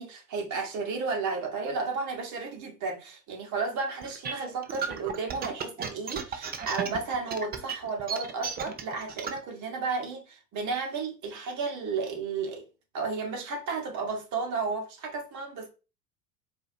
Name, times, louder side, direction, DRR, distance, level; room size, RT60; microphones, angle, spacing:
voice 1, 0.0-12.6 12.9-15.7, right 4 dB, 40° right, 1.5 m, -33 dB
sound 1, 4.0-9.4, right 7 dB, 20° right, 0.5 m, -34 dB
4.5 x 2.9 x 2.7 m
hypercardioid pair, 85°, 46 cm